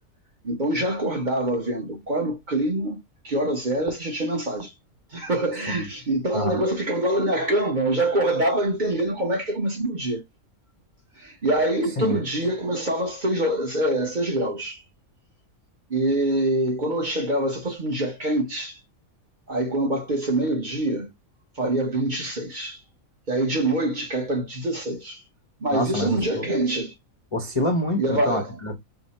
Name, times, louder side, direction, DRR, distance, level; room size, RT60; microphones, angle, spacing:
voice 1, 0.4-4.7 5.1-10.2 11.2-14.8 15.9-18.8 19.5-21.1 21.6-22.8 23.3-25.2 25.6-26.9 28.0-28.5, right 1 dB, 40° right, 1.0 m, -25 dB
voice 2, 25.7-26.5 27.3-28.7, left 1 dB, 35° left, 0.6 m, -27 dB
4.9 x 2.1 x 4.0 m
omnidirectional pair, 1.4 m